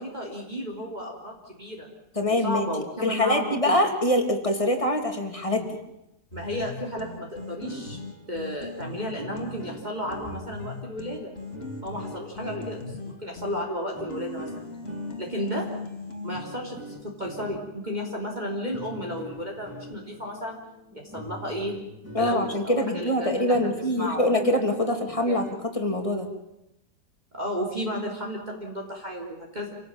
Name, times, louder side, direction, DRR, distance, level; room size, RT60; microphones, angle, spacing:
voice 1, 0.0-1.9 2.4-3.9 6.3-8.0 8.3-11.3 11.8-14.7 15.2-15.7 16.2-20.6 20.9-21.8 22.2-24.2 25.3-25.4 27.3-29.7, equal, 25° right, -1 dB, 3.6 m, -33 dB
voice 2, 2.2-2.7 3.0-5.7 22.1-25.4 25.7-26.3, left 1 dB, 20° left, 3 dB, 3.1 m, -24 dB
sound 1, 6.3-16.4, left 3 dB, 35° left, 2.5 m, -40 dB
sound 2, 7.5-22.7 23.1-23.2 23.5-25.7, equal, 10° right, 5.3 m, -45 dB
28.5 x 18.0 x 9.0 m, 0.86 s
omnidirectional pair, 1.8 m